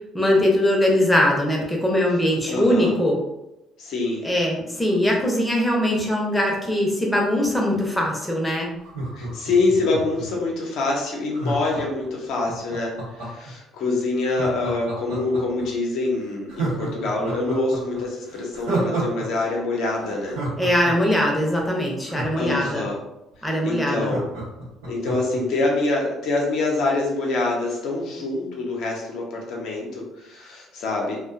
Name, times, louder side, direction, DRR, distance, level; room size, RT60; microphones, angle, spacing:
voice 1, 0.1-3.2 4.2-8.7 20.6-22.9 23.4-24.1, left 1 dB, 10° left, -1 dB, 0.7 m, -21 dB
voice 2, 2.5-3.0 3.8-4.3 9.1-20.4 22.4-23.0 23.4-24.2 24.9-31.2, left 2 dB, 60° left, -1 dB, 0.6 m, -25 dB
Laughter, 8.8-10.5 11.3-13.5 14.2-15.6 16.0-16.1 16.5-19.3 19.5-19.6 20.0-22.9 23.3-23.4 23.6-25.4 25.8-25.9, right 2 dB, 80° right, 0.8 m, -30 dB
2.5 x 2.2 x 2.4 m, 0.90 s
figure-of-eight pair, 50°, 0 cm